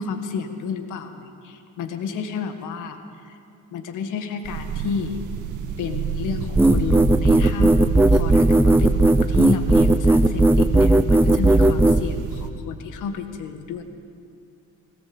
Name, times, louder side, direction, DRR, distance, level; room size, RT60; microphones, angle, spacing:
voice 1, 0.0-3.4 3.7-5.2 5.8-7.8 8.1-13.8, left 6 dB, 85° left, 7 dB, 1.8 m, -31 dB
sound 1, 4.4-12.5, right 6 dB, 80° right, 2.0 m, -29 dB
sound 2, 6.6-12.0, right 2 dB, 5° right, 0.7 m, -16 dB
19.5 x 18.0 x 8.0 m, 2.5 s
cardioid pair, 90°, 30 cm